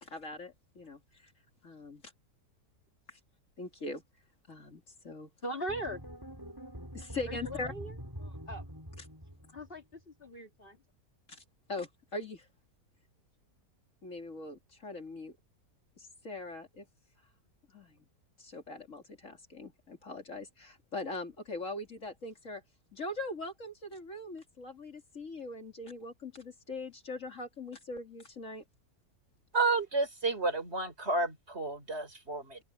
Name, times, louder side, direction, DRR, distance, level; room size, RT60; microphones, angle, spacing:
voice 1, 0.0-1.0 1.6-2.0 3.1-3.2 3.6-4.0 4.5-5.3 6.9-7.7 9.0-9.1 11.3-11.4 11.7-12.5 14.0-15.4 16.0-16.9 17.7-18.0 18.4-22.6 22.9-28.6, left 2 dB, 50° left, 2.9 m, -41 dB
voice 2, 5.4-6.0 7.3-8.0 8.2-8.6 9.5-10.8, equal, 35° left, 2.3 m, -40 dB
sound 1, 5.7-9.9, equal, 15° right, 6.2 m, -45 dB
voice 3, 29.5-32.6, right 3 dB, 40° right, 4.3 m, -31 dB
omnidirectional pair, 1.6 m